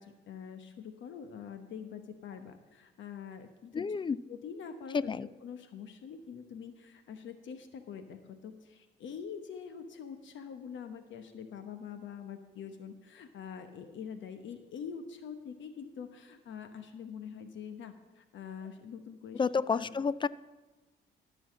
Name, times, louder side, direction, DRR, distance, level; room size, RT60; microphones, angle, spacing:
voice 1, 0.0-4.0 4.3-19.4 19.7-19.9, left 7 dB, 70° left, 8 dB, 1.0 m, -45 dB
voice 2, 3.7-4.2 4.9-5.3 19.4-20.3, left 5 dB, 25° left, 18 dB, 0.4 m, -30 dB
13.0 x 5.7 x 7.4 m, 1.1 s
cardioid pair, 90°, 20 cm